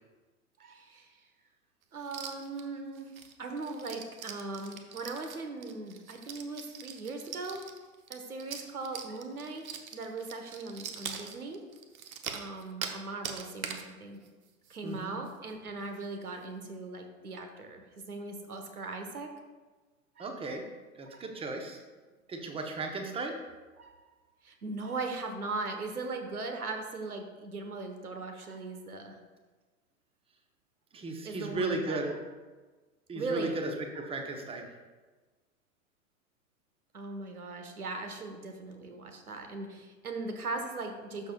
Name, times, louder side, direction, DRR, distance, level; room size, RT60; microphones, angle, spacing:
voice 1, 0.6-1.2 1.9-3.1 3.4-7.6 8.1-9.7 9.9-11.6 12.3-14.2 14.7-19.3 20.2-20.3 21.1-21.2 23.8-24.0 24.4-29.2 31.2-32.2 33.1-33.6 36.9-41.3, right 3 dB, 90° right, 5 dB, 1.3 m, -39 dB
sound 1, 2.0-2.6 3.0-13.0 13.2-13.9 14.2-14.3 14.6-15.0 15.3-15.4 15.8-16.0, right 7 dB, 75° right, 1.0 m, -42 dB
voice 2, 14.8-15.2 20.2-20.6 21.0-21.8 22.3-23.4 30.9-32.2 33.1-34.7, right 3 dB, 15° right, 4 dB, 0.9 m, -35 dB
12.0 x 6.3 x 2.4 m, 1.3 s
hypercardioid pair, 105°, 43 cm